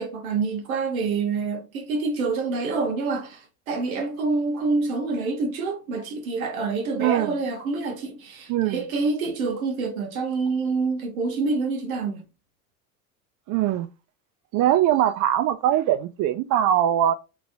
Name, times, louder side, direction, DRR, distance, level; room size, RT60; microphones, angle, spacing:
voice 1, 0.0-12.2, right 4 dB, 80° right, 1.0 m, -27 dB
voice 2, 7.0-7.4 8.5-8.9 13.5-13.9 14.5-17.1, right 11 dB, 45° right, 0.4 m, -21 dB
3.0 x 2.8 x 2.6 m
hypercardioid pair, 75°, 41 cm